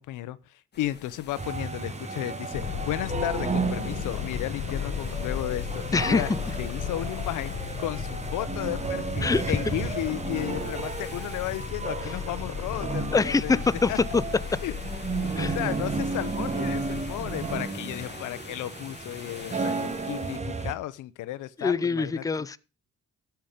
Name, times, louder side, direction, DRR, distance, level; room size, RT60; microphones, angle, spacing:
voice 1, 0.0-6.3 6.6-13.6 13.9-14.0 14.6-14.7 15.3-22.5, left 14 dB, 85° left, 0.8 m, -34 dB
sound 1, 0.7-20.4, left 6 dB, 35° left, 1.2 m, -48 dB
sound 2, 1.4-20.7, right 4 dB, 20° right, 1.1 m, -33 dB
sound 3, 2.5-17.6, left 8 dB, 70° left, 1.6 m, -36 dB
voice 2, 5.9-6.2 9.2-9.6 13.1-14.2 15.4-15.6 21.6-22.6, left 4 dB, 10° left, 0.5 m, -24 dB
13.0 x 5.9 x 5.1 m
cardioid pair, 90°, 30 cm